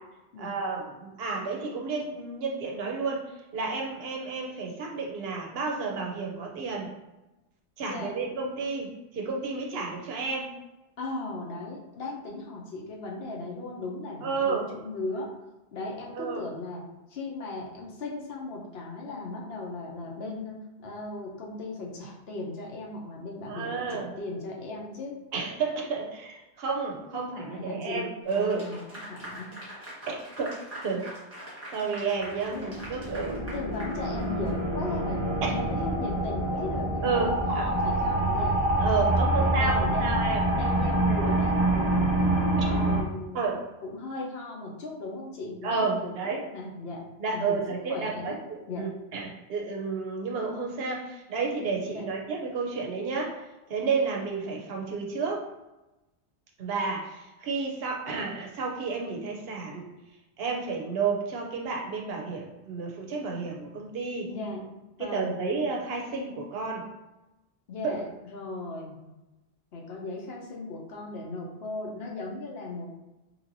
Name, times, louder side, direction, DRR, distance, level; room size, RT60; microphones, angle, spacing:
voice 1, 0.4-3.2 3.5-6.9 7.8-10.5 14.2-14.6 16.2-16.4 23.5-24.1 25.3-28.6 30.1-30.5 30.8-31.1 31.7-33.4 35.4-35.5 37.0-37.7 38.8-40.4 42.6-42.7 43.3-43.6 45.6-46.4 47.2-53.4 53.7-55.5 56.6-59.9 60.4-64.3 65.0-66.9 68.0-68.1, right 4 dB, 65° right, 0 dB, 0.8 m, -31 dB
voice 2, 7.8-8.1 11.0-15.3 15.7-16.8 17.1-25.2 27.1-28.1 28.3-29.5 32.5-32.7 33.2-40.2 40.5-42.3 42.7-43.4 43.8-47.0 47.3-47.6 47.9-48.4 48.7-48.8 51.9-52.1 64.3-65.4 67.7-69.0 69.7-72.9, left 2 dB, 65° left, -1 dB, 0.9 m, -37 dB
Clapping / Applause, 28.3-34.6, right 1 dB, 15° right, 0.9 m, -43 dB
sound 1, 32.3-43.0, right 1 dB, 45° right, 0.3 m, -26 dB
3.1 x 2.8 x 2.6 m, 1.0 s
omnidirectional pair, 1.1 m